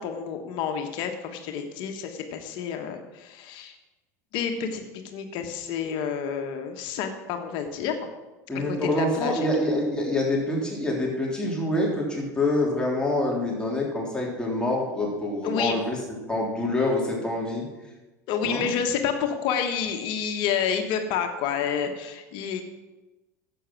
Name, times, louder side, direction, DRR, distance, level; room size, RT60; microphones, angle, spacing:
voice 1, 0.0-3.7 4.3-4.8 5.1-7.9 8.8-9.4 15.4-15.8 18.3-22.6, left 7 dB, 60° left, 5 dB, 1.3 m, -29 dB
voice 2, 8.5-16.0 16.3-17.6 18.4-18.7, left 1 dB, 10° left, -3 dB, 3.4 m, -26 dB
10.0 x 8.1 x 6.1 m, 1.1 s
hypercardioid pair, 85°, 9 cm